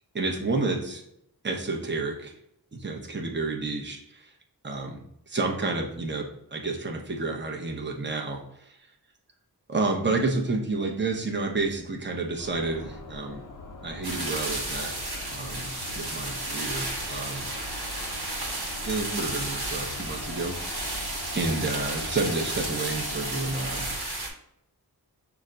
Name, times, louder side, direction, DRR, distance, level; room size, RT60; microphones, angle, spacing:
voice 1, 0.1-1.0 1.4-2.3 2.7-4.0 4.6-5.0 5.3-8.8 9.7-13.4 13.8-14.9 15.3-17.5 18.8-23.9, right 3 dB, 30° right, 0 dB, 0.8 m, -30 dB
sound 1, 12.4-24.0, left 2 dB, 55° left, 0.6 m, -42 dB
sound 2, 14.0-24.3, right 2 dB, 80° right, 1.1 m, -33 dB
5.9 x 2.2 x 3.8 m, 0.77 s
wide cardioid pair, 45°, 39 cm